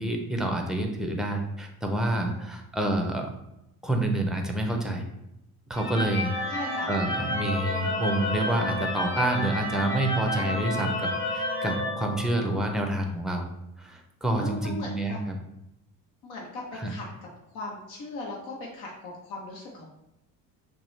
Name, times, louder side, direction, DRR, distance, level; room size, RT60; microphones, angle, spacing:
voice 1, 0.0-3.3 3.8-5.0 5.7-6.4 6.9-13.5 13.8-15.4 16.7-16.9, right 1 dB, ahead, 3 dB, 0.4 m, -28 dB
sound 1, 5.8-12.8, left 1 dB, 30° left, 1.2 m, -31 dB
voice 2, 6.5-6.9 14.4-15.2 16.2-17.0 17.5-19.9, left 2 dB, 90° left, -2 dB, 1.0 m, -38 dB
5.9 x 2.3 x 3.1 m, 0.84 s
cardioid pair, 135°, 37 cm